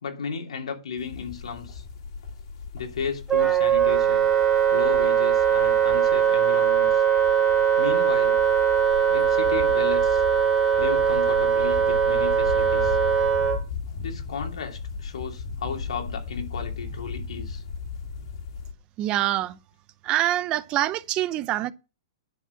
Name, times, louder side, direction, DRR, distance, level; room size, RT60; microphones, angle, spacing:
voice 1, 0.0-1.8 2.7-4.3 4.7-7.0 7.8-8.4 9.1-10.2 10.8-13.0 14.0-17.6, left 6 dB, 85° left, 2.7 m, -34 dB
sound 1, 1.0-18.7, left 5 dB, 60° left, 2.6 m, -37 dB
Wind instrument woodwind instrument, 3.3-13.6, right 8 dB, 10° right, 2.2 m, -21 dB
voice 2, 19.0-19.6 20.0-21.7, right 14 dB, 30° right, 0.7 m, -25 dB
10.5 x 5.0 x 7.6 m
hypercardioid pair, 140°, 3 cm